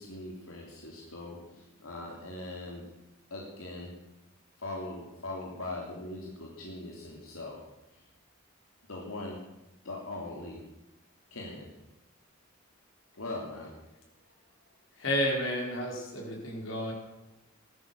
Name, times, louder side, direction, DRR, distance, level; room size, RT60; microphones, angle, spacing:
voice 1, 0.0-2.8 3.3-3.9 4.6-7.6 8.9-9.4 9.8-10.6 11.3-11.7 13.1-13.9, left 2 dB, 90° left, -1 dB, 3.2 m, -40 dB
voice 2, 15.0-16.9, equal, 70° left, 0 dB, 4.4 m, -31 dB
15.5 x 13.0 x 6.9 m, 0.97 s
head